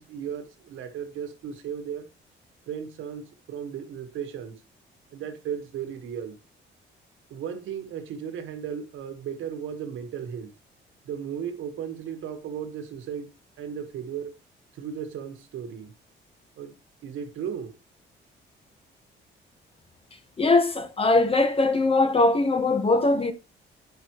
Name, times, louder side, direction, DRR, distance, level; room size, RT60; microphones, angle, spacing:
voice 1, 0.0-2.1 2.7-4.6 5.1-6.4 7.3-10.5 11.0-14.3 14.7-15.9 16.6-16.7 17.0-17.7, right 8 dB, 80° right, 1.5 m, -35 dB
voice 2, 20.4-23.3, left 2 dB, 30° left, 1.5 m, -21 dB
10.0 x 6.0 x 3.1 m
cardioid pair, 90°, 20 cm